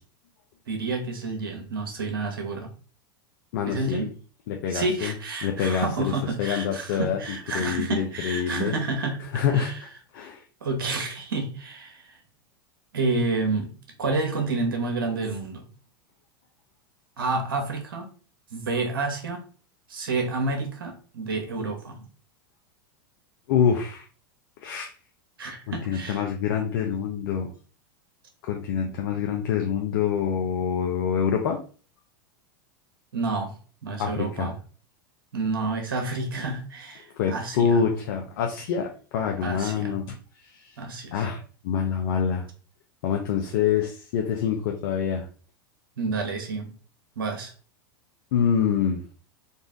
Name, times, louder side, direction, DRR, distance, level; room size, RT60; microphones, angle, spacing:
voice 1, 0.7-2.7 3.7-4.1 4.7-9.2 9.5-9.8 10.6-12.2 12.9-13.7 14.0-15.7 17.2-18.1 18.5-19.4 19.9-22.1 25.4-26.3 28.9-29.2 33.1-34.5 35.3-37.8 39.4-39.9 40.8-41.2 46.0-46.7 47.2-47.5, right 3 dB, 85° right, 3 dB, 1.2 m, -29 dB
voice 2, 3.5-4.1 4.5-5.1 5.4-6.1 6.4-8.7 9.3-9.7 10.1-10.4 23.5-24.0 24.6-24.9 25.7-27.5 28.4-31.6 34.0-34.5 37.2-40.2 40.4-40.8 41.1-41.4 41.6-42.5 43.0-45.3 48.3-49.0, left 7 dB, 65° left, 2 dB, 0.7 m, -26 dB
4.0 x 2.5 x 3.6 m, 0.39 s
hypercardioid pair, 105°, 12 cm